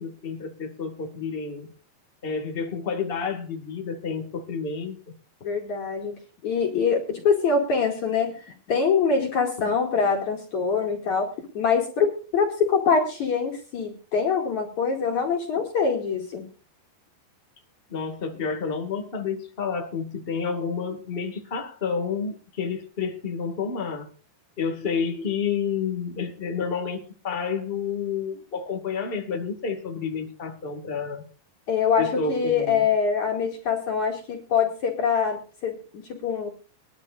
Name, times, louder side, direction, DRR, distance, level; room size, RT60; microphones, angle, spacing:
voice 1, 0.0-1.7 2.2-5.0 17.9-24.1 24.6-31.2 32.0-32.9, left 5 dB, 65° left, 3 dB, 0.5 m, -30 dB
voice 2, 5.4-6.1 6.4-16.4 31.7-36.5, left 5 dB, 45° left, 1 dB, 3.2 m, -24 dB
22.5 x 12.5 x 2.6 m, 0.37 s
omnidirectional pair, 5.2 m